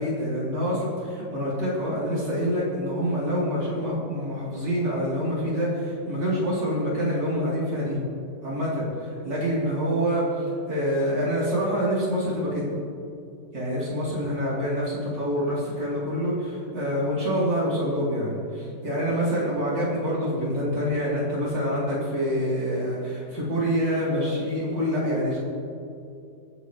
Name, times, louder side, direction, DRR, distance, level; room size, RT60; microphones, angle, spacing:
voice 1, 0.0-8.0 8.4-12.7 13.5-25.4, equal, 80° right, -7 dB, 3.8 m, -26 dB
26.0 x 9.1 x 3.1 m, 2.5 s
omnidirectional pair, 1.9 m